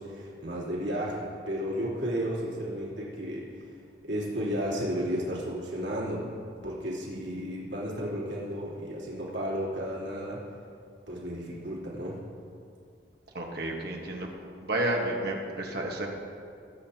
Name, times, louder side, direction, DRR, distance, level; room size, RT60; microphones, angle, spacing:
voice 1, 0.0-3.7 4.0-6.3 6.6-10.4 11.1-12.2, equal, 70° right, -6 dB, 3.1 m, -33 dB
voice 2, 13.3-14.3 14.6-16.1, right 1 dB, 55° right, 0 dB, 1.4 m, -31 dB
21.0 x 8.7 x 2.9 m, 2.4 s
head